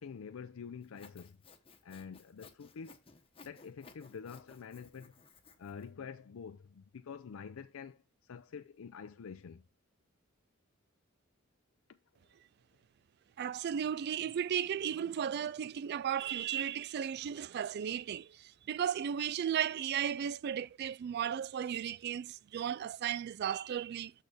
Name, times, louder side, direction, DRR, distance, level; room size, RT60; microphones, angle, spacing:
voice 1, 0.0-1.4 1.8-3.0 3.4-5.1 5.6-9.7 11.9-12.0, left 6 dB, 80° left, 0.4 m, -47 dB
Sawing, 0.8-5.9, left 4 dB, 30° left, 1.1 m, -59 dB
voice 2, 13.4-24.1, right 9 dB, 55° right, 0.3 m, -35 dB
6.6 x 6.2 x 3.3 m
head